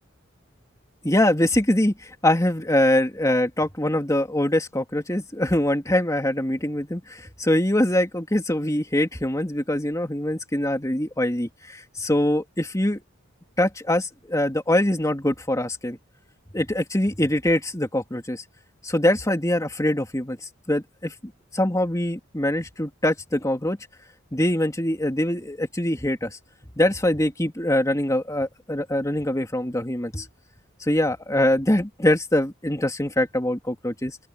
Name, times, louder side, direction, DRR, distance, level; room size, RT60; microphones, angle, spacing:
voice 1, 1.0-13.0 13.6-16.0 16.5-18.4 18.8-20.4 20.7-21.1 21.5-23.8 24.3-26.4 26.8-30.3 30.8-34.2, left 1 dB, 15° left, 2.8 m, -23 dB
open air
head